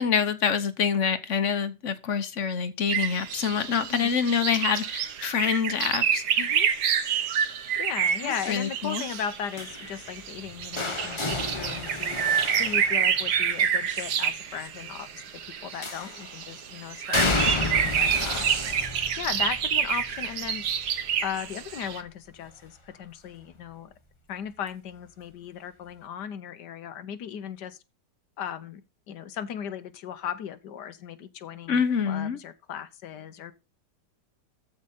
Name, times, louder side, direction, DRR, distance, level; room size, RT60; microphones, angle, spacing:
voice 1, 0.0-6.2 8.2-9.0 31.7-32.4, left 6 dB, 50° left, 1.1 m, -26 dB
sound 1, 2.9-22.0, right 8 dB, 70° right, 1.5 m, -28 dB
voice 2, 6.4-6.7 7.8-12.2 12.6-15.2 15.6-18.5 19.2-20.6 21.2-23.9 24.3-27.8 28.4-33.5, left 9 dB, 75° left, 1.5 m, -37 dB
sound 2, 9.6-13.6 15.8-16.4 17.1-22.9 23.3-23.7 24.9-25.0, left 3 dB, 25° left, 0.8 m, -32 dB
14.0 x 5.1 x 4.2 m
omnidirectional pair, 1.8 m